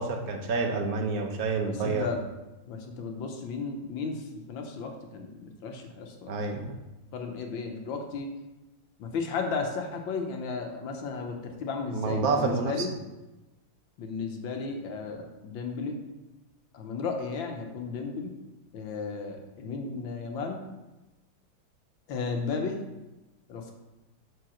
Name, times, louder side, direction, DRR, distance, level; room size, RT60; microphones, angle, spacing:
voice 1, 0.0-2.1 6.3-6.7 11.9-12.7, right 4 dB, 55° right, 2 dB, 1.3 m, -28 dB
voice 2, 1.7-2.2 2.7-6.7 7.1-8.3 9.0-12.9 14.0-16.0 16.7-18.3 18.7-20.6 22.1-22.8 23.5-23.7, left 4 dB, 75° left, 3 dB, 1.7 m, -34 dB
7.9 x 4.1 x 6.2 m, 1.0 s
omnidirectional pair, 2.2 m